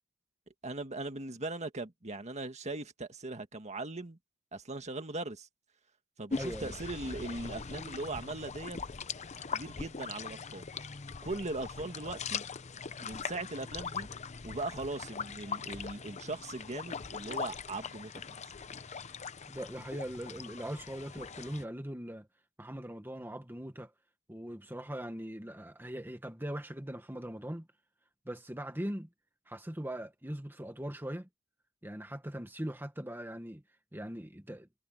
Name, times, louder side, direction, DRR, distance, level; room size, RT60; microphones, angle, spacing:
voice 1, 0.6-4.2 4.5-5.5 6.2-8.8 9.5-10.7 11.2-12.4 13.0-14.1 14.4-18.5, right 2 dB, 35° right, 1.9 m, -39 dB
sound 1, 6.3-21.6, left 5 dB, 35° left, 0.7 m, -41 dB
voice 2, 6.3-6.7 19.5-22.3 22.6-23.9 24.3-27.7 28.3-29.1 29.5-31.3 31.8-33.6 33.9-34.7, right 1 dB, 10° right, 1.7 m, -40 dB
head